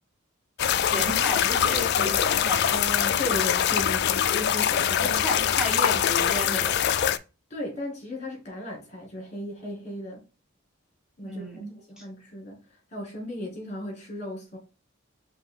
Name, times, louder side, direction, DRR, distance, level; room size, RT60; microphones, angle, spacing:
sound 1, 0.6-7.2, left 9 dB, 55° left, 0.3 m, -23 dB
voice 1, 0.8-2.7 5.0-6.8 11.2-12.0, right 1 dB, 5° right, 1.5 m, -33 dB
voice 2, 2.6-5.2 7.5-10.2 11.2-14.6, left 1 dB, 35° left, 2.3 m, -36 dB
5.5 x 2.7 x 3.7 m
head